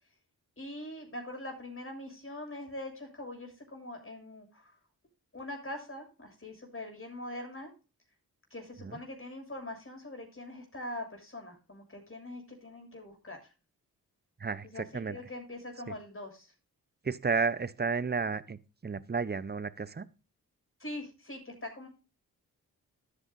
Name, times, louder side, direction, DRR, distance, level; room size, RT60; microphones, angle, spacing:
voice 1, 0.6-4.7 5.3-7.7 8.5-13.4 14.7-16.5 20.8-21.9, left 1 dB, 35° left, 7.1 m, -43 dB
voice 2, 14.4-15.2 15.9-16.0 17.0-20.1, right 5 dB, 25° right, 0.9 m, -32 dB
13.0 x 9.9 x 2.7 m
supercardioid pair, 45°, 36 cm